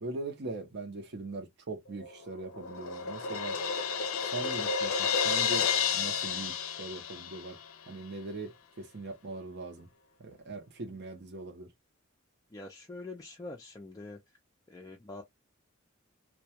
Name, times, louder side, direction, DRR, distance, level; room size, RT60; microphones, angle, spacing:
voice 1, 0.0-3.6 4.2-5.7 5.9-7.6 7.9-8.5 8.8-9.9 10.2-11.7, right 3 dB, 55° right, 0.7 m, -41 dB
Crash cymbal, 2.0-7.7, left 6 dB, 75° left, 0.5 m, -31 dB
voice 2, 12.5-14.2 14.7-15.2, left 2 dB, 15° left, 0.4 m, -44 dB
2.2 x 2.2 x 2.7 m
head